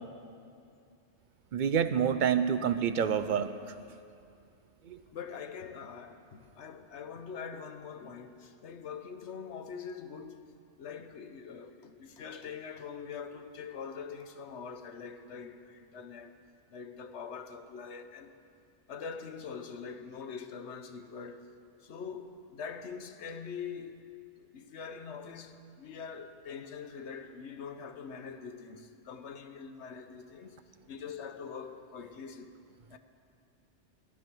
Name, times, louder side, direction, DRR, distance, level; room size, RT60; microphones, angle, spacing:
voice 1, 1.5-3.7 4.9-5.0, right 8 dB, 50° right, 0.6 m, -28 dB
voice 2, 5.1-10.5 10.8-16.4 16.7-18.3 18.9-21.5 21.8-24.0 24.4-30.6 30.9-32.5 32.9-33.0, left 6 dB, 70° left, 1.1 m, -43 dB
17.5 x 11.5 x 6.1 m
omnidirectional pair, 1.2 m